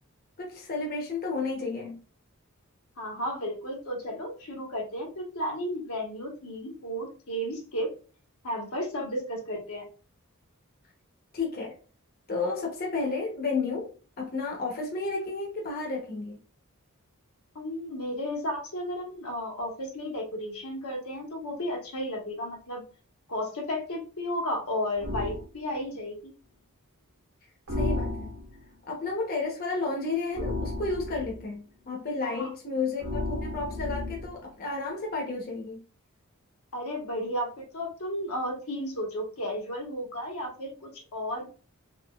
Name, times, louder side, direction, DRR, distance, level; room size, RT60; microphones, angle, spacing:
voice 1, 0.4-2.0 11.3-11.8 12.3-16.4 27.7-28.3 28.9-35.8, left 3 dB, 45° left, 0.8 m, -32 dB
voice 2, 3.0-7.9 8.4-9.9 17.5-22.8 23.3-26.3 32.2-32.5 36.7-41.4, equal, 80° left, 1.1 m, -33 dB
sound 1, 25.0-25.4 27.7-28.6 30.3-31.4 33.0-34.4, left 2 dB, 60° right, 1.2 m, -32 dB
3.7 x 2.8 x 2.3 m
head